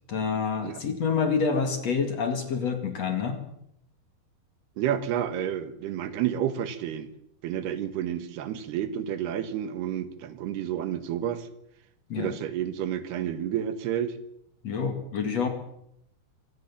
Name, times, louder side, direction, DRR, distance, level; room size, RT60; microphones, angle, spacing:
voice 1, 0.1-3.4 12.1-12.3 14.6-15.5, left 5 dB, 45° left, 7 dB, 2.9 m, -27 dB
voice 2, 4.8-7.1 7.4-11.5 12.2-14.2, right 10 dB, 75° right, 12 dB, 3.4 m, -30 dB
25.0 x 17.5 x 7.3 m, 0.75 s
omnidirectional pair, 4.7 m